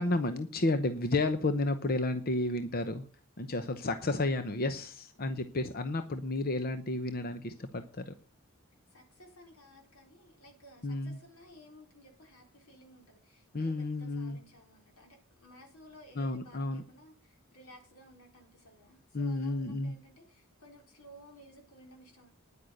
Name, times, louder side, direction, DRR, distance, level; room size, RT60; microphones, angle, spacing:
voice 1, 0.0-3.0 3.4-8.1 10.8-11.2 13.5-14.4 16.2-16.8 19.1-19.9, left 2 dB, 45° left, 9 dB, 0.9 m, -32 dB
voice 2, 8.9-22.3, equal, 85° left, 2 dB, 4.5 m, -56 dB
10.0 x 9.0 x 6.6 m, 0.41 s
head